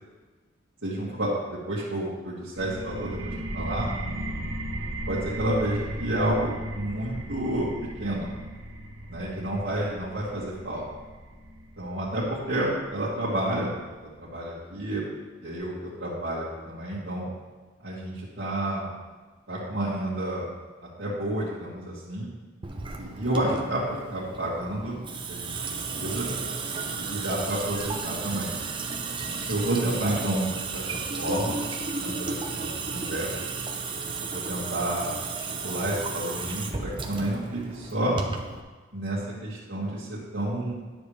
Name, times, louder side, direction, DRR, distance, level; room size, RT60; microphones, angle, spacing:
voice 1, 0.8-3.9 5.1-7.7 8.0-8.3 9.1-10.8 11.8-13.7 14.0-15.1 15.4-17.3 17.8-18.9 19.5-20.5 21.0-22.3 23.0-25.0 25.3-26.3 26.9-28.5 29.5-31.6 32.0-33.5 34.2-35.1 35.4-38.2 38.9-40.7, right 1 dB, 65° right, -9 dB, 1.9 m, -30 dB
sound 1, 2.6-14.0, right 1 dB, 85° right, 0.9 m, -36 dB
Water tap faucet / Sink (filling or washing) / Drip, 22.6-38.6, right 4 dB, 25° right, 0.7 m, -34 dB
10.5 x 7.1 x 3.3 m, 1.3 s
head